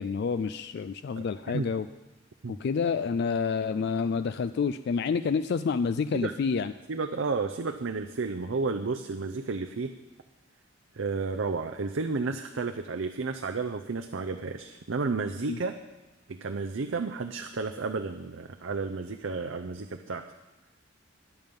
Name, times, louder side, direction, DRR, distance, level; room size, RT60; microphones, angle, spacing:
voice 1, 0.0-1.9 2.5-6.7 15.5-15.6, left 5 dB, 55° left, 12 dB, 0.3 m, -28 dB
voice 2, 1.2-1.7 2.4-2.6 6.1-6.3 6.9-9.9 10.9-15.8 16.3-20.2, right 4 dB, 70° right, 6 dB, 0.6 m, -32 dB
21.0 x 7.3 x 5.3 m, 1.1 s
head